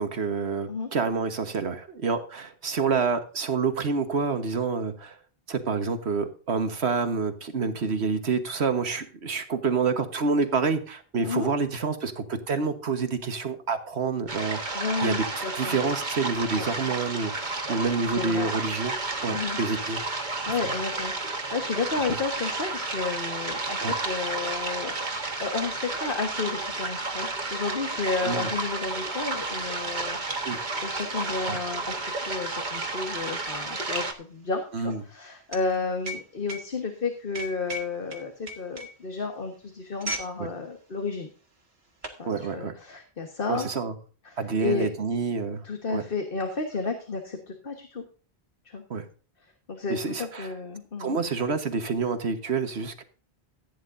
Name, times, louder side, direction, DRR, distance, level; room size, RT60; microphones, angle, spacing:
voice 1, 0.0-5.2 5.5-18.9 19.2-20.0 20.6-20.7 23.8-24.0 28.2-28.5 30.4-30.6 31.5-31.6 34.7-35.0 40.4-40.5 42.3-42.7 43.5-43.9 44.4-45.6 45.9-46.0 48.9-49.0 49.9-50.5 51.0-53.0, right 4 dB, 90° right, 8 dB, 1.6 m, -28 dB
sound 1, 14.3-34.1, right 3 dB, 45° right, 1.6 m, -32 dB
voice 2, 14.7-15.8 16.5-16.9 18.1-18.5 19.3-19.6 20.5-21.1 21.5-25.1 25.4-30.2 30.8-32.0 32.3-41.3 42.2-43.7 44.2-44.9 45.6-48.0 48.6-48.8 49.7-51.2, left 4 dB, 60° left, 4 dB, 1.6 m, -32 dB
sound 2, 31.4-40.4 40.7-40.9 41.6-42.2, equal, 75° right, 2.2 m, -39 dB
15.5 x 9.6 x 2.7 m, 0.38 s
omnidirectional pair, 1.1 m